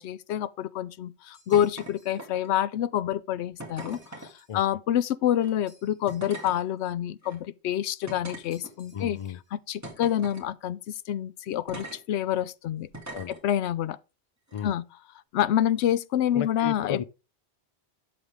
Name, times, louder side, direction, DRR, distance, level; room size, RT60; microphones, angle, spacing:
voice 1, 0.0-9.2 9.5-12.9 13.3-14.0 14.6-14.8 15.3-17.0, left 11 dB, 90° left, 0.9 m, -27 dB
sound 1, 1.3-2.3 3.8-4.6 5.7-6.8 8.5-9.5, right 1 dB, 15° left, 4.5 m, -61 dB
sound 2, 1.5-1.9 2.2-2.6 3.6-4.3 5.3-5.5 6.1-6.6 7.2-7.4 8.1-9.0 9.8-10.5 11.7-12.0 12.9-13.4 14.5-14.6, right 1 dB, 15° right, 2.2 m, -41 dB
voice 2, 8.9-9.4 13.1-13.3 14.5-14.7 16.3-17.0, left 9 dB, 45° left, 0.5 m, -34 dB
8.2 x 6.9 x 3.5 m
omnidirectional pair, 1.1 m